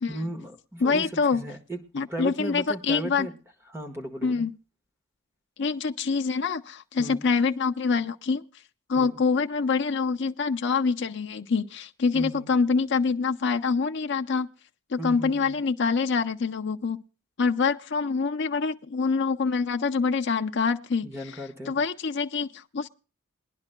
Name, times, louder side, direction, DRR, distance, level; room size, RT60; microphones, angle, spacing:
voice 1, 0.1-1.8 2.1-3.4 3.7-4.4 7.0-7.2 8.9-9.2 12.1-12.5 15.0-15.6 21.0-21.8, right 1 dB, 10° right, 1.4 m, -36 dB
voice 2, 0.8-1.4 1.9-3.3 4.2-4.5 5.6-8.4 8.9-14.5 14.9-17.0 17.4-21.1 21.7-22.9, left 5 dB, 55° left, 0.6 m, -25 dB
22.5 x 10.5 x 2.2 m
head